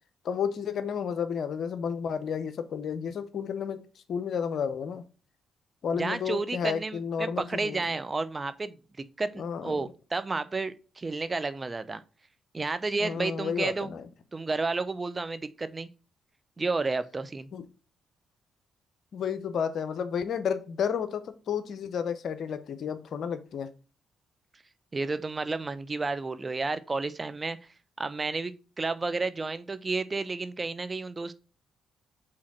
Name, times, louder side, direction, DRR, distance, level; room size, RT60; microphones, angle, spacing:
voice 1, 0.2-3.8 4.1-5.0 5.8-7.8 9.4-9.8 13.0-14.0 17.5-17.7 19.1-23.7, left 7 dB, 65° left, 0.7 m, -31 dB
voice 2, 5.9-8.7 9.2-12.0 12.5-13.9 14.3-15.9 16.6-17.5 24.9-27.6 28.0-31.3, right 3 dB, 30° right, 0.7 m, -31 dB
4.9 x 4.2 x 5.9 m
supercardioid pair, 50°, 0 cm